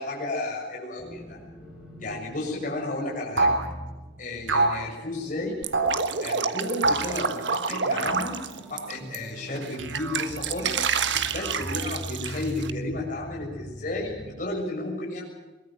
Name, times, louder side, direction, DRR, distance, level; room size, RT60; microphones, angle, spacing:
voice 1, 0.0-1.4 2.0-3.5 4.2-5.6 6.2-8.4 8.7-10.7 11.3-15.2, left 2 dB, 45° left, -3 dB, 6.8 m, -33 dB
sound 1, 1.0-14.3, equal, 5° right, 7.1 m, -42 dB
sound 2, 3.4-3.7 4.5-4.8 5.7-6.0 6.8-7.2 8.1-8.4 9.8-10.3 11.1-11.8, right 2 dB, 90° right, 2.8 m, -26 dB
Drip, 5.6-9.2 9.6-12.7, right 6 dB, 65° right, 1.5 m, -29 dB
23.0 x 20.5 x 7.6 m, 1.2 s
head